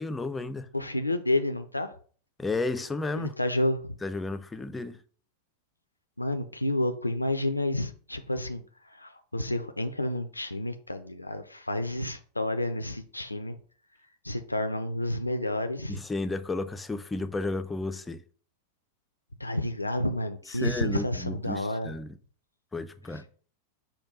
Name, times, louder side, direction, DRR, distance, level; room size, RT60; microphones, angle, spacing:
voice 1, 0.0-0.7 2.4-3.3 4.0-5.0 15.9-18.2 20.5-22.2 22.7-23.2, left 2 dB, 10° left, 0.4 m, -33 dB
voice 2, 0.7-1.9 3.2-4.0 6.2-8.6 8.9-13.6 14.2-16.0 19.4-21.9, left 1 dB, 85° left, 0.3 m, -30 dB
5.1 x 2.2 x 4.2 m
figure-of-eight pair, 90°, 0 cm